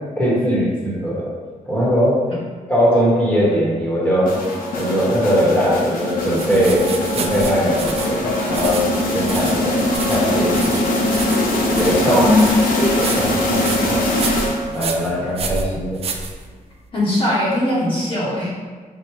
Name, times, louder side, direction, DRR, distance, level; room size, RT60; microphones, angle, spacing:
voice 1, 0.2-1.3 1.7-2.1 2.7-4.3 4.8-6.9 7.1-8.8 9.1-9.8 10.1-10.7 11.7-12.2 12.8-14.0 14.7-16.0, equal, 10° left, -7 dB, 1.1 m, -20 dB
sound 1, 4.3-14.9, left 1 dB, 85° left, 0.8 m, -21 dB
sound 2, 6.3-16.8, right 5 dB, 45° right, 0.4 m, -30 dB
voice 2, 12.1-12.5 16.9-18.7, left 1 dB, 40° left, -7 dB, 1.0 m, -19 dB
4.4 x 2.2 x 4.6 m, 1.4 s
wide cardioid pair, 165°, 14 cm